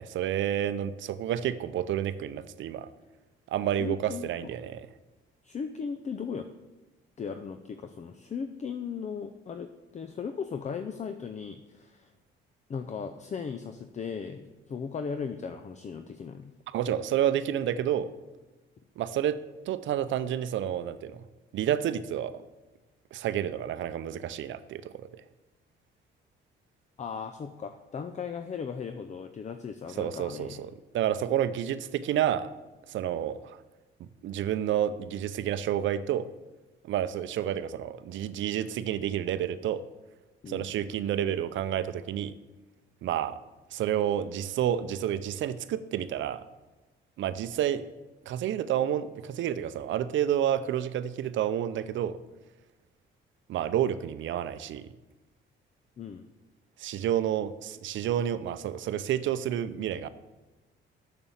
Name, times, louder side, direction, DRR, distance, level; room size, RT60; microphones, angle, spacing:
voice 1, 0.0-2.9 3.5-4.9 16.7-18.1 19.0-19.4 19.7-21.2 21.5-22.4 23.1-24.9 30.0-32.5 32.9-33.6 34.0-36.3 36.8-39.8 40.5-42.3 43.0-43.4 43.7-46.4 47.2-47.8 48.3-52.2 53.5-54.9 56.8-60.1, right 10 dB, 75° right, 14 dB, 0.6 m, -29 dB
voice 2, 3.8-4.3 5.4-6.5 7.2-12.1 12.7-16.5 27.0-30.6 40.4-40.7 56.0-56.3, left 6 dB, 35° left, 9 dB, 0.6 m, -37 dB
7.1 x 6.8 x 7.0 m, 1.2 s
cardioid pair, 90°, 20 cm